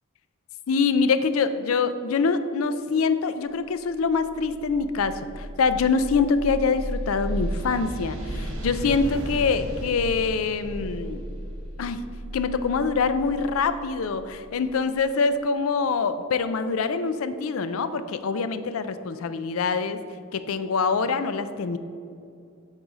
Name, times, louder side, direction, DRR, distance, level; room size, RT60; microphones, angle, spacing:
voice 1, 0.7-11.2 11.8-12.0 12.3-20.0 20.3-21.8, left 4 dB, 85° left, 11 dB, 0.4 m, -25 dB
sound 1, 4.2-14.9, right 1 dB, 90° right, 1.2 m, -34 dB
8.9 x 4.1 x 4.8 m, 2.5 s
head